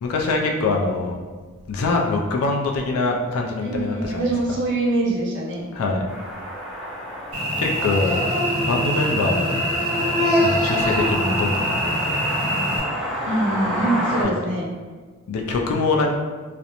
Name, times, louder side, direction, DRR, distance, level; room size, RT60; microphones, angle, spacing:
voice 1, 0.0-1.2 1.7-4.2 5.7-6.1 7.6-9.7 10.4-11.8 12.0-12.2 15.3-16.2, left 3 dB, 70° left, 1 dB, 0.3 m, -23 dB
voice 2, 3.6-5.7 13.2-14.6, right 2 dB, 55° right, -5 dB, 0.7 m, -24 dB
sound 1, 6.1-14.2, equal, ahead, 0.3 m, -30 dB
Cricket / Buzz, 7.3-12.8, equal, 25° right, 0.9 m, -23 dB
2.4 x 2.0 x 2.8 m, 1.4 s
head